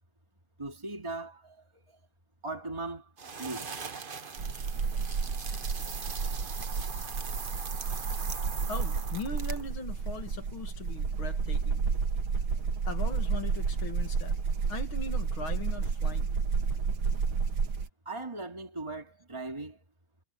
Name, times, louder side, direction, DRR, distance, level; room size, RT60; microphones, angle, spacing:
voice 1, 0.6-1.8 2.4-3.8 18.0-19.8, right 2 dB, 15° right, 2.8 m, -39 dB
sound 1, 3.2-9.7, right 5 dB, 35° right, 1.0 m, -41 dB
sound 2, 4.4-17.9, right 5 dB, 85° right, 2.7 m, -31 dB
voice 2, 8.7-11.9 12.9-14.4 14.7-16.3, left 4 dB, 90° left, 3.2 m, -40 dB
omnidirectional pair, 2.2 m